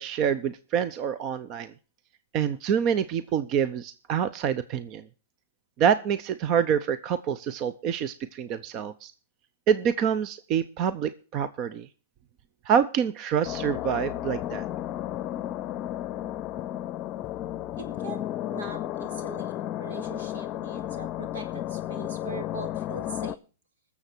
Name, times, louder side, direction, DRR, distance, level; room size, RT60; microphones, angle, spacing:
voice 1, 0.0-1.7 2.3-5.0 5.8-9.1 9.7-11.9 12.7-14.6, right 8 dB, 40° right, 15 dB, 0.8 m, -26 dB
sound 1, 13.4-23.4, left 12 dB, 35° left, 0.7 m, -33 dB
voice 2, 17.8-23.4, right 4 dB, 85° right, 7 dB, 4.4 m, -42 dB
21.0 x 7.1 x 4.5 m, 0.36 s
hypercardioid pair, 130°, 0 cm